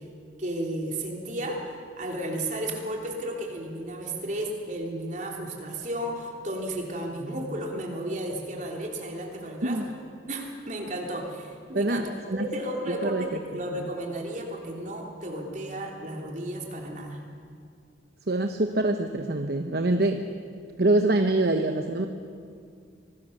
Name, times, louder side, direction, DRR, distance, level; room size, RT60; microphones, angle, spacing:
voice 1, 0.4-1.6 1.9-9.8 10.3-17.2, right 1 dB, 40° right, 1 dB, 3.4 m, -33 dB
voice 2, 11.7-12.5 12.9-13.2 13.8-13.9 18.3-20.2 20.8-22.1, right 2 dB, 60° right, 6 dB, 1.0 m, -25 dB
26.0 x 19.5 x 6.7 m, 2.2 s
head